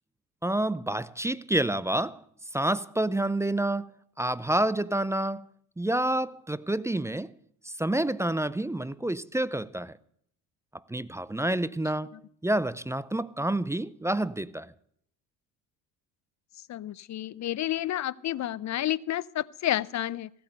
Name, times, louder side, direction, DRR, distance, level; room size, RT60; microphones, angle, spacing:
voice 1, 0.4-2.2 2.5-3.9 4.2-5.5 5.8-7.3 7.6-10.0 10.9-12.1 12.4-14.7, right 1 dB, 5° right, 0.5 m, -28 dB
voice 2, 16.7-20.3, left 13 dB, 40° left, 0.6 m, -30 dB
16.0 x 8.7 x 6.6 m
hypercardioid pair, 65°, 43 cm